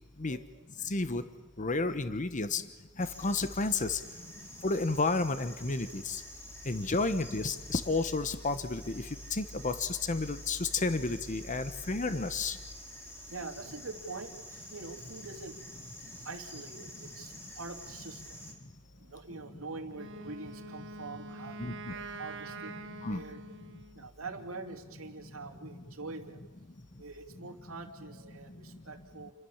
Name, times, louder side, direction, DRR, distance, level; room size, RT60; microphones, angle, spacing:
voice 1, 0.3-0.9 4.4-4.5 6.6-6.8 11.5-11.7 13.3-14.3 14.7-15.6 16.2-18.4 19.0-22.8 23.1-23.4 23.9-26.4 27.0-29.3, right 3 dB, 80° right, 5 dB, 2.7 m, -45 dB
voice 2, 0.8-1.2 1.6-2.6 3.0-4.0 4.6-6.2 6.7-9.0 9.3-12.6 21.6-21.9 23.0-23.2, left 3 dB, 35° left, 11 dB, 1.1 m, -31 dB
sound 1, 3.0-18.5, left 1 dB, 10° left, 4.3 m, -49 dB
Wind instrument woodwind instrument, 19.9-24.1, right 2 dB, 65° right, 1.4 m, -45 dB
29.0 x 23.0 x 7.3 m, 1.3 s
head